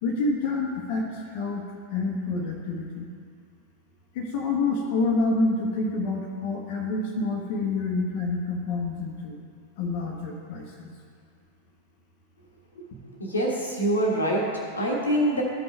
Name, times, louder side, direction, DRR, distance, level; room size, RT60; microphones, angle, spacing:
voice 1, 0.0-1.6 1.9-3.1 4.1-9.4 9.8-10.9, left 3 dB, 50° left, -1 dB, 1.2 m, -27 dB
voice 2, 13.2-15.4, right 1 dB, 75° left, -2 dB, 1.4 m, -25 dB
14.5 x 5.4 x 3.5 m, 2.2 s
figure-of-eight pair, 90°, 0 cm